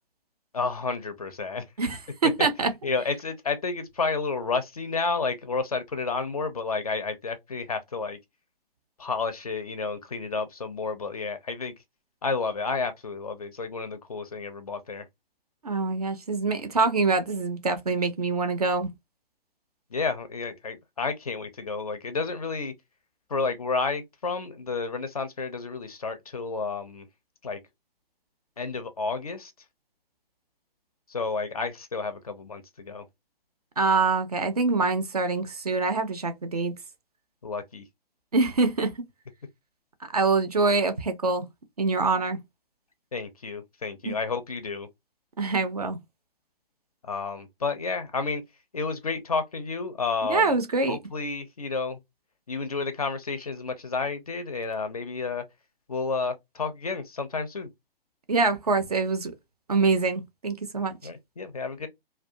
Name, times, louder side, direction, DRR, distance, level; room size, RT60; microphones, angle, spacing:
voice 1, 0.5-1.7 2.8-8.2 9.0-11.7 12.2-15.1 19.9-22.7 23.3-27.1 27.4-27.6 28.6-29.5 31.1-33.1 37.4-37.9 43.1-44.9 47.0-48.4 48.7-50.6 50.9-52.0 52.5-55.4 55.9-57.7 60.8-61.9, left 4 dB, 40° left, 0.4 m, -31 dB
voice 2, 1.8-2.7 15.6-18.9 33.8-36.7 38.3-39.1 40.1-41.5 41.8-42.4 44.1-44.2 45.4-46.0 50.3-51.0 58.3-59.3 59.7-60.9, right 3 dB, 40° right, 0.4 m, -25 dB
2.2 x 2.2 x 2.5 m
figure-of-eight pair, 135°, 30 cm